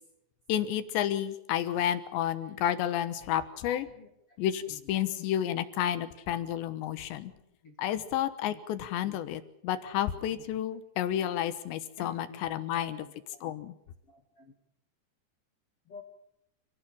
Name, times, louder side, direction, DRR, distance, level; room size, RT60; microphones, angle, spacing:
voice 1, 0.5-3.9 4.4-7.3 7.8-13.1 13.4-13.7, left 11 dB, 80° left, 12 dB, 3.3 m, -31 dB
voice 2, 12.0-12.5 12.7-13.5 14.1-14.5 15.9-16.0, left 4 dB, 40° left, 3 dB, 2.4 m, -49 dB
27.0 x 17.5 x 7.2 m, 0.81 s
omnidirectional pair, 5.2 m